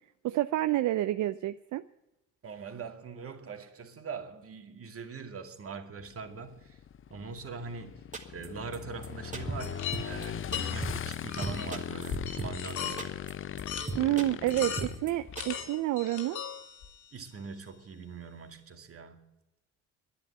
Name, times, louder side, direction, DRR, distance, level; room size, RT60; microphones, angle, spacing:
voice 1, 0.2-1.8 14.0-16.4, right 15 dB, 75° right, 0.6 m, -29 dB
voice 2, 2.4-6.8 7.1-8.0 8.3-13.2 17.1-19.3, right 5 dB, 50° right, 2.3 m, -42 dB
Motorcycle / Engine, 6.0-15.7, left 9 dB, 45° left, 0.6 m, -40 dB
sound 1, 8.1-8.5 8.7-8.8 9.0-9.1 9.3-9.7 9.9-10.3 10.5-11.2 11.4-12.7 13.0-13.3 13.6-13.7 13.9-14.5 14.8-15.1 15.4-15.5, right 3 dB, 25° right, 2.5 m, -36 dB
sound 2, 9.6-10.8 11.3-11.7 12.1-13.1 13.7-13.9 14.4-15.1 15.3-17.0, left 7 dB, 70° left, 2.7 m, -37 dB
10.5 x 10.5 x 9.8 m
cardioid pair, 90°, 30 cm